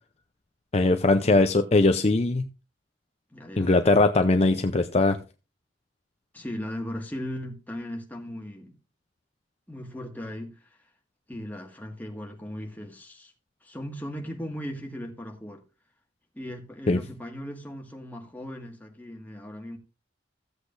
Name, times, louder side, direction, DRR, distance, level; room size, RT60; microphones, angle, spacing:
voice 1, 0.7-2.5 3.6-5.2 16.9-17.0, left 2 dB, 35° left, 0.6 m, -20 dB
voice 2, 3.3-3.7 6.3-8.8 9.7-10.8 11.3-13.3 13.6-15.6 16.3-19.8, equal, 10° left, 1.9 m, -38 dB
15.0 x 8.1 x 2.6 m
head